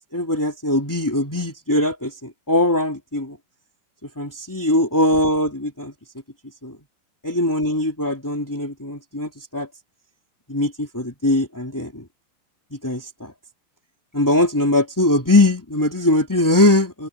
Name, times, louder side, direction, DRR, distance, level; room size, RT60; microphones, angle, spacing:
voice 1, 0.1-3.4 4.2-5.9 6.6-6.8 7.2-9.7 10.5-12.1 12.8-13.3 14.1-17.1, left 1 dB, 5° left, 2.2 m, -21 dB
omnidirectional pair, 5.2 m